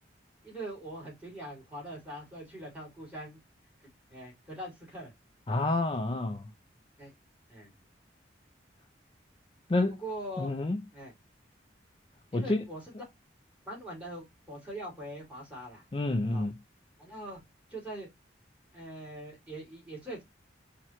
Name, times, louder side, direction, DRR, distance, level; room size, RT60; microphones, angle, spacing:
voice 1, 0.4-3.4 4.1-5.1 7.0-7.1 7.5-7.7 9.8-10.5 10.9-11.1 12.3-12.8 13.7-15.8 16.3-16.5 17.0-17.4 17.7-18.1 18.7-20.2, right 1 dB, 5° right, 2.5 m, -42 dB
voice 2, 5.5-6.5 9.7-10.0 10.4-10.8 12.3-12.6 15.9-16.5, left 2 dB, 25° left, 0.4 m, -29 dB
4.5 x 2.8 x 3.0 m
head